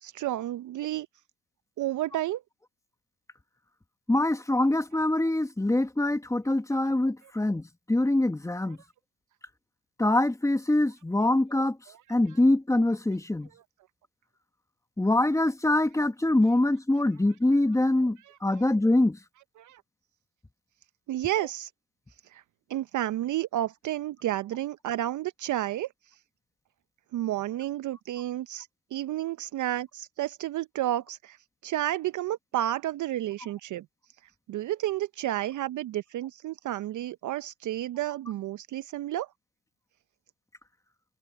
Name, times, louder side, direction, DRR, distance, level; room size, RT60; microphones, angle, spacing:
voice 1, 0.0-1.1 1.8-2.4 8.7-8.8 18.2-18.6 19.6-19.8 21.1-21.7 22.3-22.4 22.7-25.9 27.1-31.4 31.6-33.8 34.5-39.3, right 13 dB, 40° right, 0.9 m, -31 dB
voice 2, 4.1-7.6 7.9-8.8 10.0-11.8 12.1-13.5 15.0-18.2 18.4-19.2, left 1 dB, 5° left, 1.9 m, -24 dB
hypercardioid pair, 85°, 49 cm